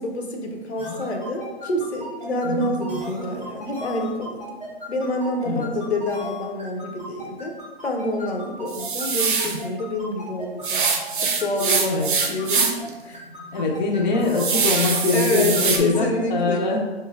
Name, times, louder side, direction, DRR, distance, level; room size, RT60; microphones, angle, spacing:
voice 1, 0.0-4.4 4.9-7.5 7.8-10.8 11.2-12.7 13.0-13.2 15.1-16.7, left 1 dB, 80° left, 2 dB, 0.8 m, -27 dB
sound 1, 0.8-12.8 13.1-16.2, left 1 dB, 5° right, 0.5 m, -38 dB
sound 2, 8.7-9.6 10.6-12.9 13.3-13.4 13.9-15.8, right 5 dB, 50° right, 0.6 m, -23 dB
voice 2, 13.5-16.0 16.3-16.8, left 3 dB, 45° left, 0 dB, 0.6 m, -23 dB
4.2 x 3.1 x 2.3 m, 1.2 s
figure-of-eight pair, 145°, 32 cm